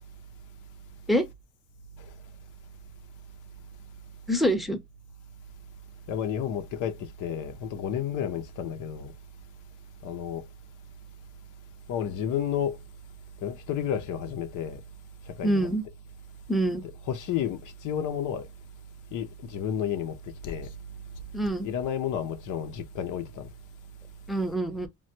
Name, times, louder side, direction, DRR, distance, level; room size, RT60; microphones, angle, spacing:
voice 1, 4.3-4.8 15.4-15.8 16.5-16.8 21.3-21.7 24.3-24.9, right 1 dB, ahead, 0.6 m, -25 dB
voice 2, 6.1-9.1 10.0-10.4 11.9-12.8 13.4-14.8 15.4-15.7 17.1-18.5 19.1-20.2 20.4-20.7 21.6-23.5, left 9 dB, 85° left, 0.6 m, -31 dB
3.3 x 2.3 x 2.7 m
cardioid pair, 90°, 30 cm